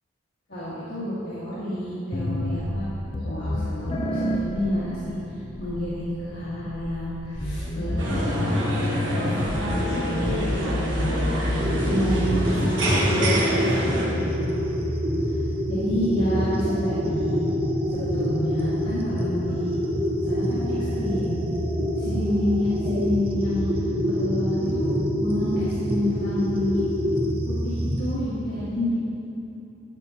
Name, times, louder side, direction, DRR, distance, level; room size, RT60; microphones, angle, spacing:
voice 1, 0.5-2.9 3.2-5.1 5.6-8.6 9.1-11.2 11.8-14.6 15.7-17.4 17.9-19.7 20.2-21.4 22.0-23.7 24.1-26.8 27.5-29.0, left 1 dB, 60° left, -12 dB, 1.8 m, -29 dB
sound 1, 2.1-13.4, left 1 dB, 30° left, 0.6 m, -29 dB
sound 2, 8.0-14.1, right 1 dB, 85° right, 1.4 m, -28 dB
sound 3, 11.6-28.2, equal, 30° right, 0.8 m, -26 dB
11.0 x 8.2 x 2.9 m, 2.9 s
head